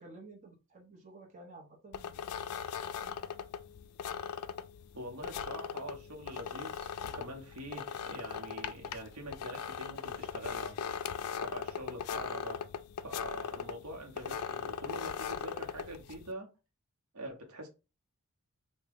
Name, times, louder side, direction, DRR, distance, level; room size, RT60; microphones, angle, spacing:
voice 1, 0.0-2.3 2.8-3.1, right 2 dB, 35° right, 0.8 m, -53 dB
sound 1, 1.9-16.3, left 7 dB, 80° left, 0.3 m, -39 dB
voice 2, 4.9-10.8 11.4-12.6 13.0-16.5 17.1-17.7, right 1 dB, 75° right, 0.8 m, -44 dB
3.5 x 2.1 x 3.4 m
head